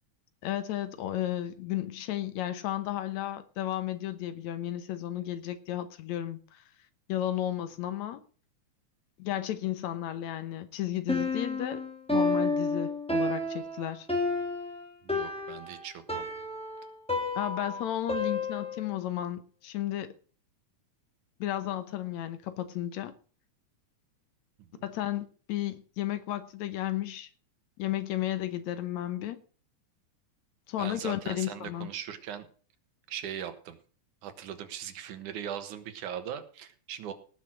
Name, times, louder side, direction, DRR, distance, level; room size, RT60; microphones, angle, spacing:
voice 1, 0.4-6.6 7.1-8.2 9.2-11.8 12.1-14.1 17.4-20.1 21.4-23.1 24.8-27.3 27.8-29.4 30.7-31.9, left 13 dB, 70° left, 2.1 m, -33 dB
Piano, 11.1-18.9, left 2 dB, ahead, 1.8 m, -31 dB
voice 2, 15.0-16.3 24.7-24.8 30.8-32.5 33.1-33.8 34.2-37.1, right 9 dB, 80° right, 2.7 m, -39 dB
18.0 x 6.1 x 6.2 m
omnidirectional pair, 3.5 m